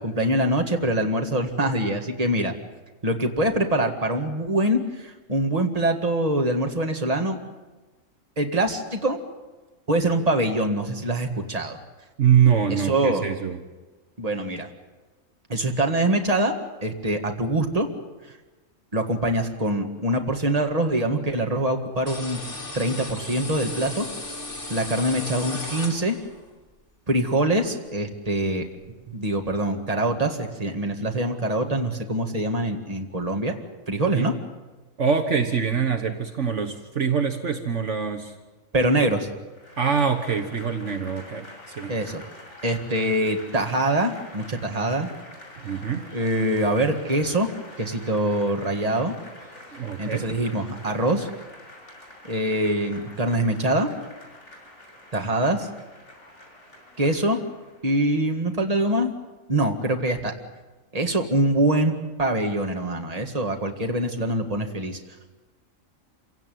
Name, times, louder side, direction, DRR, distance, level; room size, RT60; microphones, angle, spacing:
voice 1, 0.0-2.5 3.0-7.4 8.4-9.2 9.9-11.8 12.7-13.2 14.2-14.7 15.5-17.9 18.9-22.4 22.7-24.1 24.7-26.2 27.1-28.7 29.1-33.5 33.9-34.3 38.7-39.3 41.9-42.2 42.6-45.1 46.1-47.5 47.8-49.1 50.0-51.3 52.2-53.9 55.1-55.7 57.0-57.4 57.8-59.1 59.5-60.3 60.9-61.9 62.2-65.0, right 1 dB, 30° right, 4 dB, 2.0 m, -24 dB
voice 2, 12.2-13.6 34.1-34.3 35.0-38.3 39.8-41.9 45.6-46.1 49.7-50.3, right 7 dB, 65° right, 5 dB, 1.6 m, -24 dB
sound 1, 22.1-26.4, left 2 dB, 40° left, 3.3 m, -35 dB
Applause / Crowd, 39.5-58.0, left 1 dB, 60° left, 6.6 m, -46 dB
27.0 x 17.0 x 9.4 m, 1.2 s
omnidirectional pair, 1.4 m